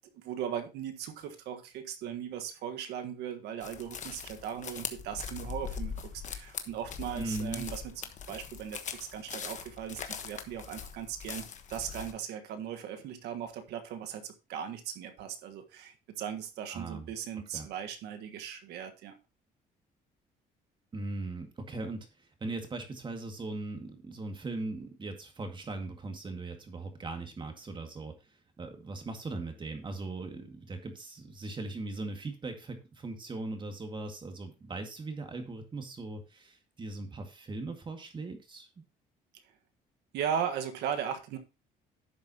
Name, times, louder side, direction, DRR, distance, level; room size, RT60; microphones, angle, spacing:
voice 1, 0.1-7.9 8.3-19.1 40.1-41.4, right 8 dB, 80° right, 1.4 m, -38 dB
sound 1, 3.6-12.1, left 7 dB, 45° left, 1.2 m, -41 dB
voice 2, 7.2-7.7 16.7-17.1 17.5-17.7 20.9-28.3 28.6-38.7, right 2 dB, 30° right, 2.0 m, -39 dB
11.0 x 7.3 x 2.9 m
cardioid pair, 110°, 17 cm